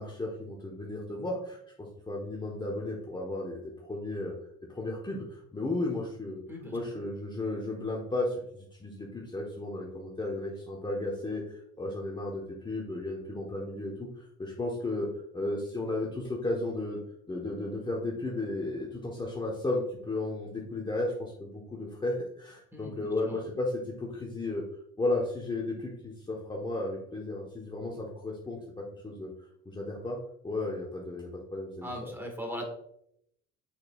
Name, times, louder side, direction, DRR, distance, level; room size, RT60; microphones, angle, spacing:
voice 1, 0.0-3.6 3.9-4.3 4.7-6.4 6.7-14.1 14.4-17.0 17.3-24.7 25.0-29.3 29.6-30.2 30.4-32.1, left 2 dB, 15° left, -3 dB, 1.1 m, -34 dB
voice 2, 6.5-7.0 22.7-23.4 31.8-32.6, equal, 5° right, 2 dB, 1.6 m, -40 dB
6.4 x 6.3 x 2.4 m, 0.73 s
cardioid pair, 110°, 32 cm